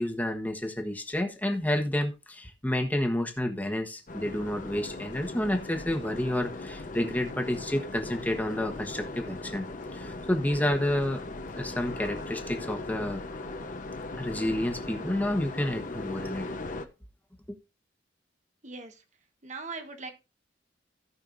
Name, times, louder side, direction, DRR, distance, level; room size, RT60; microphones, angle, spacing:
voice 1, 0.0-9.7 9.9-11.2 11.5-13.2 14.2-16.5 17.5-17.6, left 1 dB, 10° left, 1.3 m, -30 dB
sound 1, 4.1-16.9, left 2 dB, 45° left, 1.0 m, -39 dB
voice 2, 19.4-20.1, right 3 dB, 45° right, 1.4 m, -39 dB
17.0 x 5.7 x 2.6 m
head